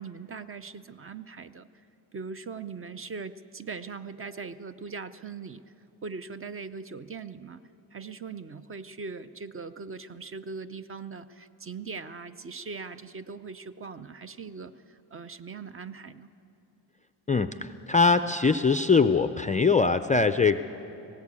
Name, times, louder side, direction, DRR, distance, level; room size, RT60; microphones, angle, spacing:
voice 1, 0.0-1.7 2.1-5.6 6.0-7.6 7.9-16.3, right 4 dB, 30° right, 12 dB, 0.6 m, -40 dB
voice 2, 17.3-20.6, left 4 dB, 20° left, 9 dB, 0.4 m, -22 dB
18.5 x 17.5 x 8.4 m, 2.9 s
cardioid pair, 105°, 45 cm